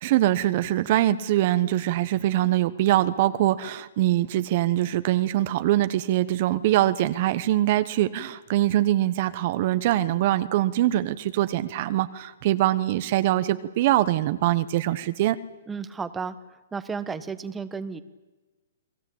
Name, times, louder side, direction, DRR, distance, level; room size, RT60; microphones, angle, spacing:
voice 1, 0.0-15.4, right 14 dB, 45° right, 13 dB, 1.1 m, -23 dB
voice 2, 15.7-16.4 16.7-18.0, right 5 dB, 10° right, 11 dB, 1.2 m, -32 dB
29.5 x 20.0 x 8.7 m, 1.2 s
hypercardioid pair, 150°, 0 cm